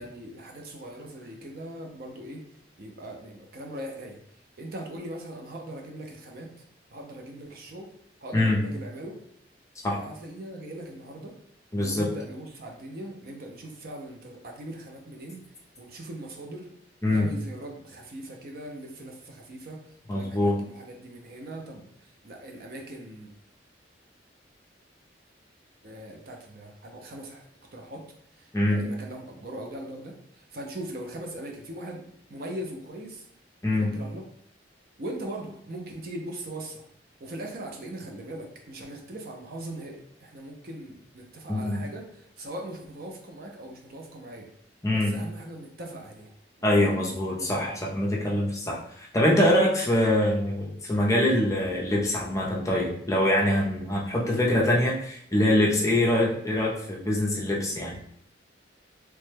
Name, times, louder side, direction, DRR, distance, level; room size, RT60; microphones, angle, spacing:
voice 1, 0.0-2.4 2.8-4.2 4.6-6.5 6.9-7.9 8.2-9.1 9.8-11.4 11.8-16.7 17.1-23.3 25.8-27.4 27.7-28.1 28.3-33.3 33.7-34.3 35.0-36.8 37.2-44.5 44.9-46.3 46.6-47.8, right 1 dB, 50° right, 1 dB, 0.5 m, -40 dB
voice 2, 11.7-12.1 17.0-17.3 20.1-20.6 28.5-28.8 33.6-33.9 41.5-41.8 44.8-45.1 46.6-58.0, left 1 dB, 15° left, -3 dB, 0.5 m, -24 dB
3.1 x 2.2 x 3.2 m, 0.69 s
head